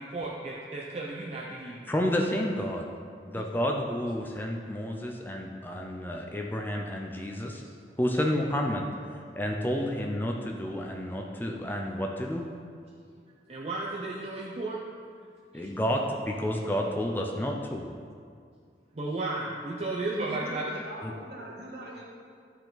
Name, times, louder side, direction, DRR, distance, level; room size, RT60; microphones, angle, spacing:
voice 1, 0.0-1.9 3.3-3.5 13.5-14.8 15.5-15.7 18.9-20.6, right 2 dB, 35° right, -4 dB, 0.6 m, -34 dB
voice 2, 1.6-2.9 3.2-7.6 8.0-8.8 9.3-12.5 15.5-17.9 21.0-21.1, equal, 10° left, 1 dB, 0.5 m, -30 dB
voice 3, 20.1-22.0, equal, 65° right, -4 dB, 1.8 m, -41 dB
12.0 x 4.5 x 3.9 m, 2.2 s
head